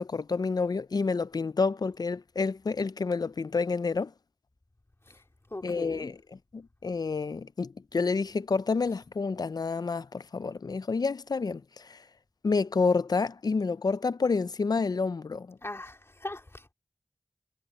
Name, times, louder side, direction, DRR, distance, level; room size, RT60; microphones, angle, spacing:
voice 1, 0.0-4.1 5.6-6.2 6.5-12.0 12.4-15.6, left 4 dB, 85° left, 0.4 m, -29 dB
voice 2, 5.5-6.1 15.6-16.7, left 2 dB, 40° left, 3.2 m, -40 dB
wide cardioid pair, 60°, 7 cm